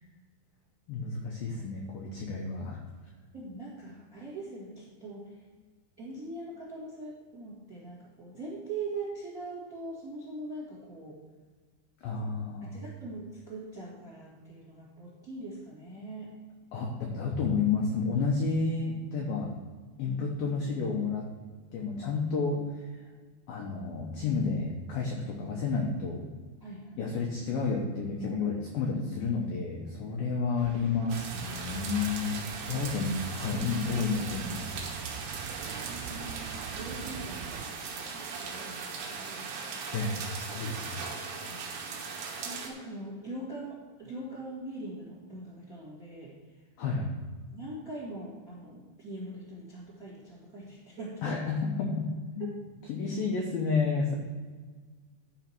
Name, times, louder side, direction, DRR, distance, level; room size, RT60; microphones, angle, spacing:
voice 1, 0.9-2.8 12.0-12.8 16.7-19.5 20.0-21.3 21.7-22.9 23.5-26.2 27.0-34.7 39.9-41.0 46.8-47.1 51.2-52.5 52.9-54.1, left 4 dB, 90° left, 0 dB, 2.0 m, -31 dB
voice 2, 3.3-5.3 6.0-11.2 12.7-16.3 20.0-20.2 26.6-27.1 35.7-39.5 41.3-41.7 42.4-46.3 47.5-51.4, right 2 dB, 40° right, -5 dB, 1.2 m, -42 dB
sound 1, 30.6-37.7, right 8 dB, 85° right, 3.0 m, -44 dB
sound 2, 31.1-42.7, right 5 dB, 70° right, 2.9 m, -39 dB
11.5 x 5.1 x 4.5 m, 1.4 s
omnidirectional pair, 5.6 m